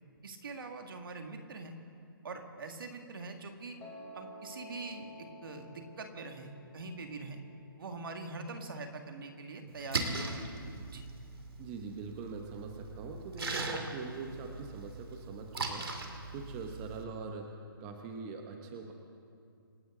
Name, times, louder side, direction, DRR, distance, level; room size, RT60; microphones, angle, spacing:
voice 1, 0.2-1.8 2.2-3.8 4.1-7.4 7.8-10.5 10.9-11.0, right 3 dB, 70° right, 4 dB, 2.2 m, -43 dB
Piano, 3.8-9.9, equal, 15° left, 3.4 m, -53 dB
Splash splatter, 9.7-17.0, right 3 dB, 90° right, 2.3 m, -40 dB
voice 2, 11.6-15.9 16.3-18.9, right 4 dB, 25° right, 3 dB, 1.1 m, -43 dB
27.0 x 12.5 x 3.8 m, 2.4 s
hypercardioid pair, 155°, 12 cm